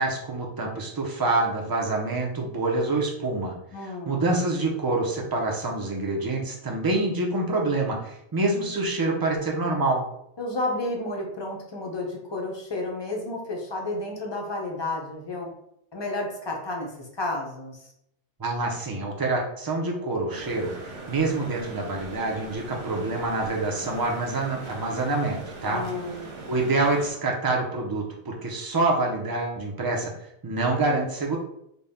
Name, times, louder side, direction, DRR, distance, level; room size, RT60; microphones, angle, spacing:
voice 1, 0.0-3.5 4.1-10.0 18.4-20.7 21.1-25.8 26.5-30.1 30.4-31.4, right 2 dB, 30° right, 0 dB, 0.4 m, -26 dB
voice 2, 3.7-4.2 10.4-15.5 15.9-17.9 25.7-26.3, left 2 dB, 30° left, 0 dB, 0.5 m, -31 dB
sound 1, 20.3-27.1, right 3 dB, 75° right, 1.1 m, -40 dB
4.0 x 2.2 x 3.5 m, 0.76 s
omnidirectional pair, 1.2 m